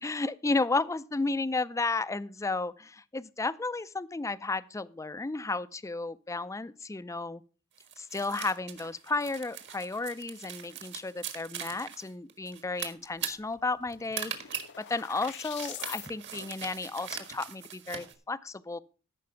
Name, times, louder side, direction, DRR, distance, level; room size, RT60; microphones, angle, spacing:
voice 1, 0.0-7.4 8.0-14.3 14.8-18.8, left 3 dB, 15° left, 0.4 m, -33 dB
sound 1, 7.8-18.1, right 9 dB, 55° right, 1.7 m, -41 dB
sound 2, 13.6-16.1, left 12 dB, 55° left, 0.7 m, -44 dB
13.5 x 5.8 x 5.6 m
head